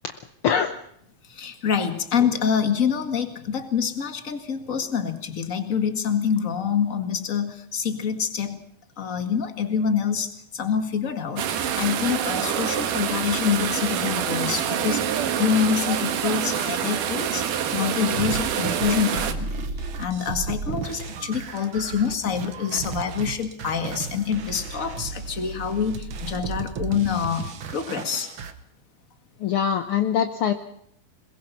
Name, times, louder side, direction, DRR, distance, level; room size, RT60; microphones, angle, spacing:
voice 1, 0.4-0.8 29.4-30.5, left 8 dB, 65° left, 8 dB, 1.4 m, -23 dB
voice 2, 1.3-8.6 9.0-17.4 17.7-19.7 20.0-28.3, left 7 dB, 30° left, 8 dB, 1.8 m, -26 dB
sound 1, 11.4-19.3, right 9 dB, 90° right, 3.0 m, -26 dB
sound 2, 18.2-28.5, right 5 dB, 55° right, 1.6 m, -34 dB
22.0 x 22.0 x 5.7 m, 0.71 s
omnidirectional pair, 3.6 m